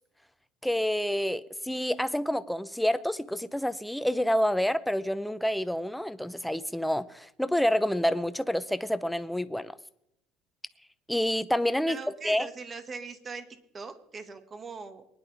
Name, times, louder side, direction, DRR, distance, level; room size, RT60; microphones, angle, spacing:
voice 1, 0.6-9.8 11.1-12.0 12.2-12.5, equal, ahead, 0.7 m, -28 dB
voice 2, 11.8-13.5 13.7-15.0, right 4 dB, 30° right, 1.6 m, -41 dB
23.0 x 10.5 x 3.5 m
cardioid pair, 120°, 0 cm